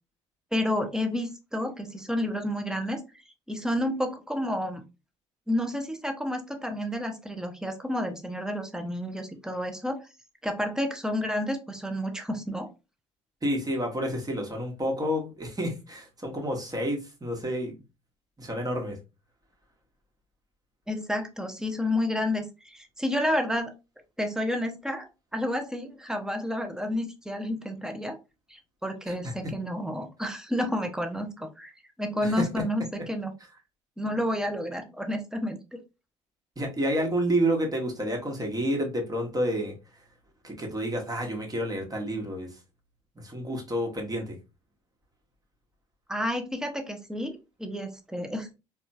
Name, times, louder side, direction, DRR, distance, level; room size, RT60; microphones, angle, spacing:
voice 1, 0.5-3.0 3.5-4.8 5.5-10.0 10.4-12.7 20.9-23.7 24.2-28.2 28.5-31.7 32.0-33.3 34.0-35.8 46.1-48.5, left 1 dB, 5° right, 0.7 m, -30 dB
voice 2, 13.4-17.8 18.4-19.0 29.1-29.3 32.2-32.3 36.6-39.7 40.4-42.5 43.2-44.4, equal, 25° right, 1.4 m, -29 dB
4.1 x 2.4 x 2.7 m
figure-of-eight pair, 55°, 16 cm